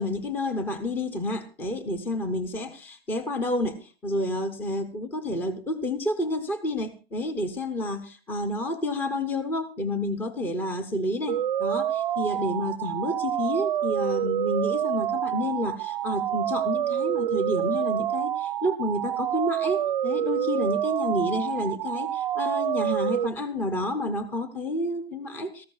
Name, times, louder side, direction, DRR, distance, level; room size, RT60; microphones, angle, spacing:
voice 1, 0.0-25.7, left 1 dB, 5° left, 11 dB, 0.6 m, -30 dB
sound 1, 11.3-23.3, right 11 dB, 50° right, 0.5 m, -27 dB
17.5 x 14.0 x 2.4 m, 0.33 s
hypercardioid pair, 145°, 30 cm